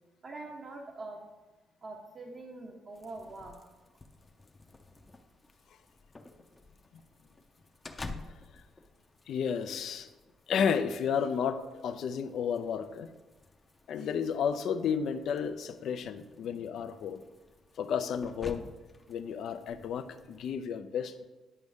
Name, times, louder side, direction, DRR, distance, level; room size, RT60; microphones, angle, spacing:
voice 1, 0.2-1.2 1.8-3.6, right 2 dB, 50° right, -1 dB, 1.0 m, -44 dB
sound 1, 2.9-20.6, left 3 dB, 25° left, 0.6 m, -51 dB
voice 2, 9.3-10.1 10.5-13.1 13.9-17.2 17.8-18.7 19.1-21.2, left 7 dB, 70° left, 9 dB, 0.4 m, -32 dB
9.6 x 5.2 x 3.5 m, 1.2 s
cardioid pair, 90°, 0 cm